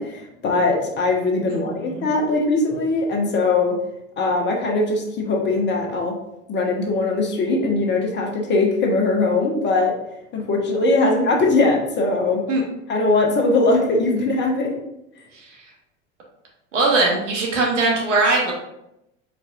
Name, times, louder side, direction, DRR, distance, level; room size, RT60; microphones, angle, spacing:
voice 1, 0.0-3.8 4.2-6.1 6.5-9.9 10.3-12.4 12.9-14.8, left 3 dB, 30° left, 1 dB, 1.0 m, -20 dB
voice 2, 1.5-2.1 12.5-12.6 15.3-15.4 16.7-18.5, right 3 dB, 70° right, -1 dB, 1.4 m, -21 dB
4.5 x 4.0 x 2.5 m, 0.84 s
figure-of-eight pair, 80°, 38 cm